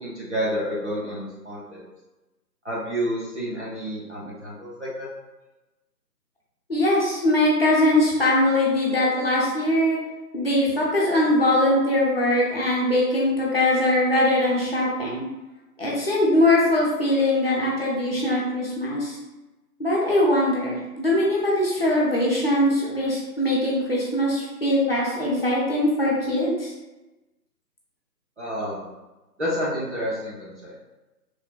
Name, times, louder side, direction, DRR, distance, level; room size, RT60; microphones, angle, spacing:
voice 1, 0.0-1.8 2.6-5.1 28.4-28.9 29.4-30.8, equal, 45° right, -7 dB, 0.6 m, -29 dB
voice 2, 6.7-10.0 10.3-15.2 15.8-19.2 19.8-26.7, left 1 dB, 40° left, -5 dB, 0.6 m, -21 dB
3.1 x 2.2 x 2.2 m, 1.1 s
figure-of-eight pair, 150°, 49 cm